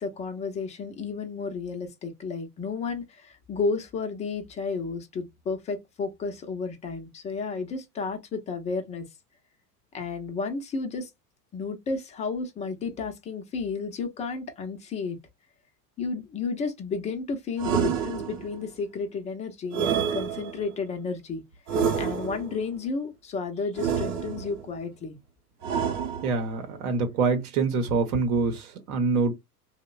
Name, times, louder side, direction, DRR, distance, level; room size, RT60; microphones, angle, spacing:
voice 1, 0.0-9.1 9.9-11.1 11.5-15.2 16.0-21.4 22.0-25.2, left 4 dB, 15° left, 0.4 m, -32 dB
sound 1, 17.6-18.6 19.7-20.8 21.7-22.6 23.8-24.7 25.6-26.6, right 7 dB, 40° right, 0.7 m, -28 dB
voice 2, 26.2-29.4, right 4 dB, 65° right, 0.9 m, -25 dB
3.0 x 2.1 x 2.2 m
hypercardioid pair, 95°, 48 cm